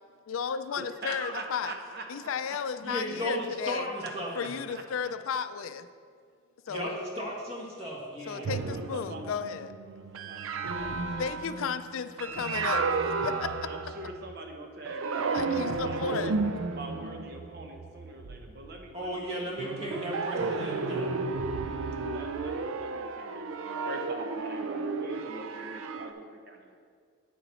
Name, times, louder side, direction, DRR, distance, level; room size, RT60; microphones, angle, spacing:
voice 1, 0.3-1.7 2.1-3.9 4.4-5.9 6.7-7.0 8.3-9.7 11.2-12.8 13.2-13.5 15.3-16.4, left 6 dB, 80° left, 11 dB, 0.4 m, -34 dB
voice 2, 0.8-2.6 3.1-3.4 4.0-5.1 6.6-7.2 7.8-7.9 8.3-9.2 9.9-10.4 10.7-11.6 13.6-15.4 15.8-16.0 16.7-19.6 22.1-26.8, right 2 dB, 50° right, 3 dB, 0.8 m, -43 dB
voice 3, 2.8-4.5 6.7-6.9 7.1-8.5 18.9-21.1, equal, 30° right, -3 dB, 1.6 m, -35 dB
sound 1, 8.4-14.4 14.9-18.8 19.6-26.1, right 4 dB, 75° right, 0.5 m, -33 dB
9.2 x 6.9 x 4.2 m, 2.1 s
head